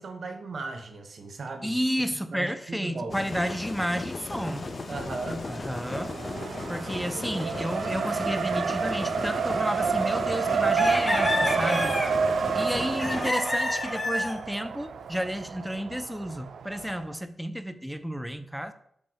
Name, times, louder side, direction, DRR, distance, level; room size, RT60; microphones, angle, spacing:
voice 1, 0.0-1.8 2.3-3.3 4.9-5.5, right 3 dB, 65° right, 5 dB, 1.0 m, -36 dB
voice 2, 1.6-4.7 5.5-6.2 6.7-12.0 12.5-18.7, equal, 5° right, 10 dB, 0.6 m, -31 dB
sound 1, 3.1-13.3, left 3 dB, 50° left, 0.3 m, -36 dB
Race car auto racing, 4.5-17.1, right 6 dB, 85° right, 0.3 m, -30 dB
sound 2, 10.8-12.2 13.0-14.4, left 1 dB, 30° left, 0.9 m, -28 dB
6.4 x 3.6 x 4.6 m, 0.69 s
cardioid pair, 45°, 0 cm